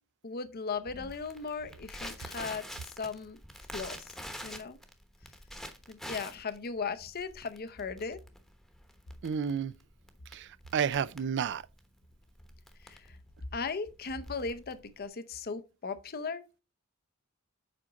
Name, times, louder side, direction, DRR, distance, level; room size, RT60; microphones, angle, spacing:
voice 1, 0.2-2.6 3.0-3.4 3.7-4.1 4.4-4.8 5.9-8.2 12.8-13.2 13.5-16.4, left 4 dB, 45° left, 0.7 m, -37 dB
Crackle, 0.9-15.1, equal, ahead, 1.0 m, -47 dB
voice 2, 9.2-9.7 10.3-11.6, right 7 dB, 55° right, 0.4 m, -31 dB
7.6 x 5.0 x 4.0 m
head